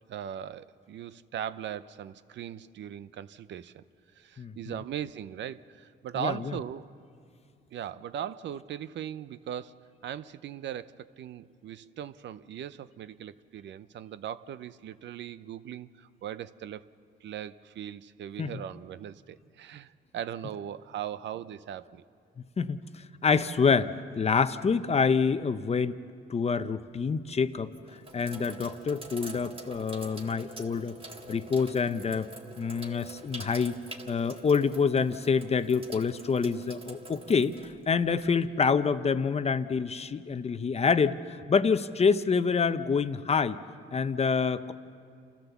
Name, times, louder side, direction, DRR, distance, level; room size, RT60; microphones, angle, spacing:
voice 1, 0.1-3.8 4.2-6.9 7.7-9.7 10.0-16.9 17.2-22.0, right 10 dB, 65° right, 15 dB, 0.6 m, -39 dB
voice 2, 23.2-26.0 26.3-27.7 28.1-31.0 31.3-32.3 32.6-33.8 34.1-43.6 43.9-44.7, left 5 dB, 30° left, 12 dB, 0.7 m, -27 dB
Sink (filling or washing), 26.6-27.0 27.6-38.5, right 1 dB, 30° right, 1.8 m, -46 dB
29.0 x 13.5 x 7.1 m, 2.4 s
cardioid pair, 90°, 20 cm